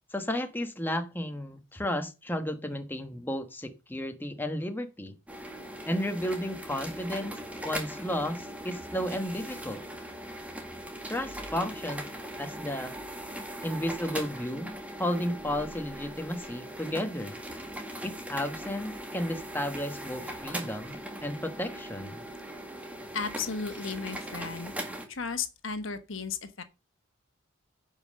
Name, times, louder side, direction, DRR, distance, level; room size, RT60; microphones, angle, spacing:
voice 1, 0.1-5.1 5.9-7.4 7.6-9.8 11.1-12.0 12.4-12.9 13.6-17.3 18.0-20.9 21.2-22.2, left 1 dB, 10° left, 1.2 m, -33 dB
sound 1, 5.3-25.0, right 1 dB, 5° right, 1.8 m, -40 dB
voice 2, 23.1-24.7 25.1-26.6, left 5 dB, 70° left, 1.3 m, -34 dB
10.5 x 5.5 x 6.6 m
head